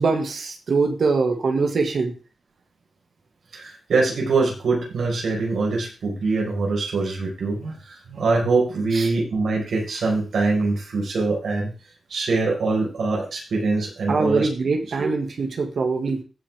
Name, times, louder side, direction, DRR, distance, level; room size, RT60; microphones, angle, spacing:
voice 1, 0.0-2.1 8.9-9.1 14.1-16.2, right 4 dB, 55° right, 4 dB, 2.1 m, -23 dB
voice 2, 3.5-11.7 12.1-14.5 15.0-15.1, right 3 dB, 80° right, -1 dB, 5.2 m, -23 dB
17.0 x 6.1 x 3.7 m, 0.34 s
wide cardioid pair, 170°, 0 cm